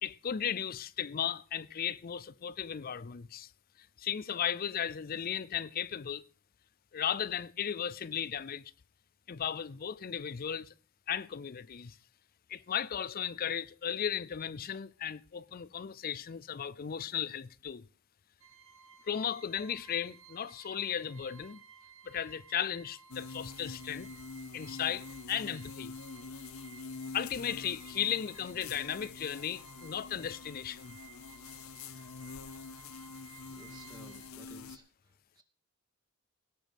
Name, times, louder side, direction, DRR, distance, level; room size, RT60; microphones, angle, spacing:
voice 1, 0.0-3.5 3.8-6.2 6.9-8.6 9.3-10.7 11.1-12.0 12.5-17.9 19.1-21.6 22.0-24.1 24.5-25.9 27.1-31.0, left 8 dB, 45° left, 0.5 m, -36 dB
sound 1, 18.4-34.3, right 7 dB, 80° right, 2.0 m, -57 dB
sound 2, 23.1-34.8, left 4 dB, 80° left, 0.7 m, -46 dB
voice 2, 33.5-34.9 35.4-35.5, right 1 dB, 20° right, 2.2 m, -54 dB
18.0 x 6.2 x 5.1 m
head